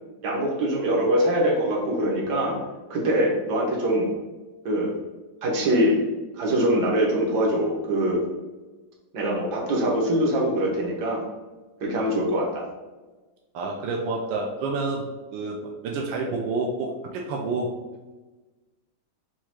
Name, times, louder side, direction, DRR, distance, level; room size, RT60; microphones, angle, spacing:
voice 1, 0.2-2.6 2.9-4.1 4.6-4.9 5.4-6.0 6.4-8.2 9.1-11.2 11.8-12.6, equal, 65° right, -2 dB, 1.6 m, -23 dB
voice 2, 13.5-17.7, right 3 dB, 85° right, -1 dB, 1.3 m, -29 dB
4.7 x 2.4 x 4.3 m, 1.2 s
omnidirectional pair, 2.0 m